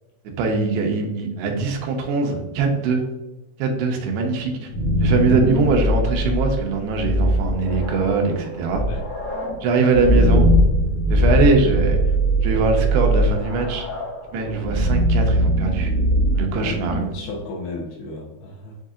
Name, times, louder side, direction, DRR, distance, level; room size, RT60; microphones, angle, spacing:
voice 1, 0.4-3.1 3.6-4.7 5.0-8.8 9.6-10.5 11.1-12.0 12.4-13.8 14.3-15.9 16.3-17.1, right 4 dB, 90° right, 2 dB, 2.8 m, -22 dB
sound 1, 4.5-17.3, equal, 55° left, 2.4 m, -21 dB
voice 2, 16.6-18.8, left 3 dB, 80° left, -3 dB, 2.9 m, -34 dB
7.5 x 2.8 x 2.4 m, 1.0 s
omnidirectional pair, 4.5 m